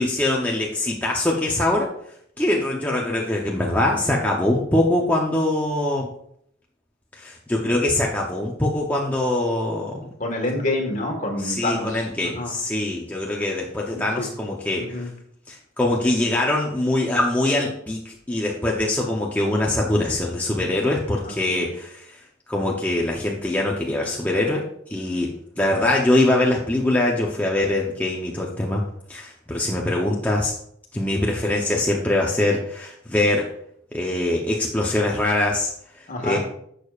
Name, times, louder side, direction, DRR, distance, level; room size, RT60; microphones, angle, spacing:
voice 1, 0.0-1.9 2.4-6.1 7.1-10.1 11.4-15.1 15.5-22.2 22.5-28.8 29.1-30.5 30.9-33.5 33.9-35.7 36.2-36.4, left 1 dB, 10° left, -2 dB, 0.7 m, -23 dB
voice 2, 10.2-12.5 13.9-14.3 14.8-15.1 21.2-21.7 36.1-36.4, left 2 dB, 40° left, 2 dB, 1.6 m, -28 dB
11.0 x 6.5 x 2.4 m, 0.69 s
head